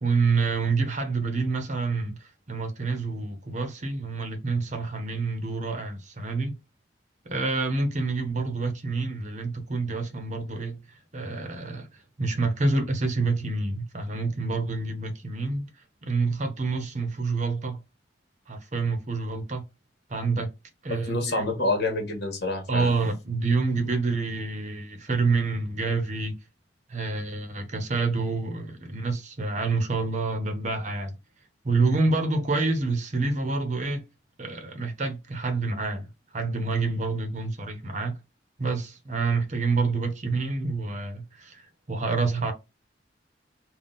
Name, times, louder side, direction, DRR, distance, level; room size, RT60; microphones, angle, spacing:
voice 1, 0.0-6.6 7.2-11.9 12.2-15.7 16.0-17.8 18.5-19.6 20.1-20.5 20.8-21.5 22.7-26.4 26.9-31.1 31.6-34.1 34.4-36.1 36.3-38.1 38.6-42.5, right 3 dB, 40° right, 0.8 m, -27 dB
voice 2, 21.1-22.9, left 2 dB, 60° left, 1.3 m, -27 dB
3.7 x 2.3 x 3.9 m
head